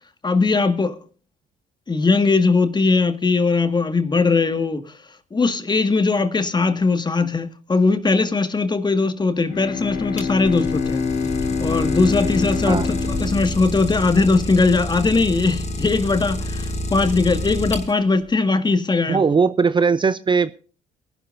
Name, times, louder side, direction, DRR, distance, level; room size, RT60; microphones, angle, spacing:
voice 1, 0.2-1.0 1.9-4.9 5.3-11.0 11.6-19.2, left 3 dB, 25° left, 1.8 m, -20 dB
Bowed string instrument, 9.5-14.7, left 5 dB, 75° left, 2.5 m, -26 dB
Idling, 9.9-18.2, left 1 dB, 40° left, 3.5 m, -28 dB
voice 2, 19.1-20.5, right 5 dB, 25° right, 0.6 m, -19 dB
23.0 x 12.0 x 2.6 m
supercardioid pair, 80°, 18 cm